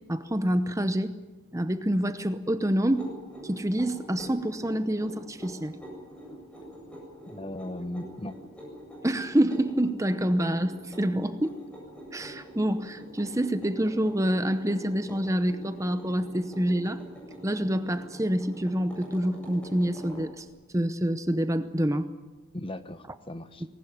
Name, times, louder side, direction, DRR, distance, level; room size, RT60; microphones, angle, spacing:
voice 1, 0.1-1.2 1.5-3.1 3.4-5.8 9.0-11.5 12.1-17.0 17.4-20.5 20.7-22.1, right 1 dB, 15° right, 10 dB, 0.8 m, -27 dB
sound 1, 2.9-20.3, equal, 5° left, 7.7 m, -45 dB
voice 2, 7.2-8.4 22.5-23.7, left 1 dB, 25° left, 11 dB, 1.0 m, -37 dB
20.0 x 18.5 x 9.9 m, 1.2 s
head